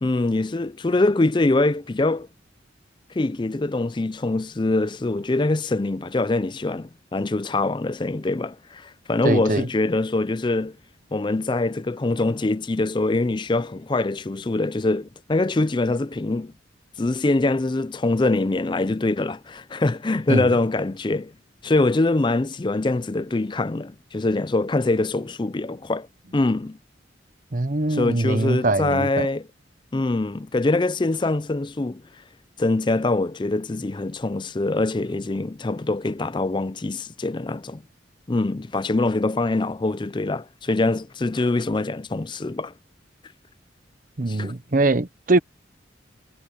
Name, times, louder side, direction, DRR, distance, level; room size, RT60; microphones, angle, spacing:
voice 1, 0.0-2.3 3.1-10.8 11.1-16.5 17.0-21.3 21.6-26.1 26.3-26.8 27.9-29.5 29.9-32.0 32.6-37.8 38.3-42.7 44.3-44.5, left 2 dB, 25° left, 0.4 m, -24 dB
voice 2, 9.2-9.7 20.3-20.5 27.5-29.3 44.2-45.4, right 2 dB, 45° right, 0.9 m, -22 dB
head